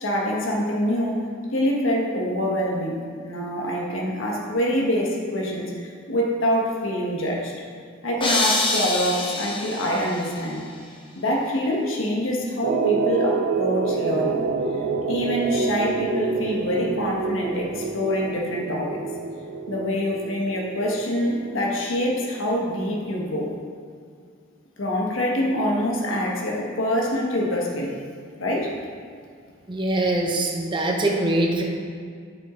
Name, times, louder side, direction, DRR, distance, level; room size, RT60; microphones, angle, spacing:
voice 1, 0.0-1.2 1.5-5.7 6.1-7.5 8.0-10.6 11.2-14.4 15.1-19.0 19.7-23.5 24.8-27.9 28.4-28.7, equal, 80° left, -2 dB, 1.3 m, -25 dB
sound 1, 8.2-10.3, left 2 dB, 25° left, 0.9 m, -25 dB
sound 2, 12.6-23.1, right 4 dB, 60° right, 0.5 m, -28 dB
voice 2, 29.7-31.6, right 1 dB, 25° right, 0 dB, 0.8 m, -23 dB
8.0 x 6.0 x 3.8 m, 2.2 s
head